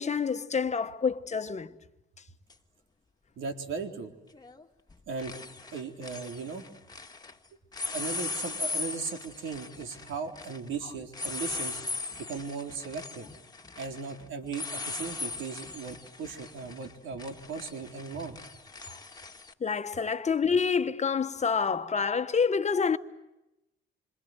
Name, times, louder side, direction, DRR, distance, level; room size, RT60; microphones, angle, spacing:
voice 1, 0.0-1.7 18.9-19.0 19.6-23.0, left 5 dB, 35° left, 1.3 m, -27 dB
sound 1, 2.5-2.6 4.3-4.6 4.9-7.3 7.7-19.5, left 3 dB, 20° left, 1.9 m, -39 dB
voice 2, 3.4-4.1 5.1-5.4 5.7-6.7 7.9-11.8 12.2-13.3 13.8-18.4, right 5 dB, 80° right, 3.9 m, -37 dB
27.5 x 26.5 x 7.9 m
cardioid pair, 90°, 20 cm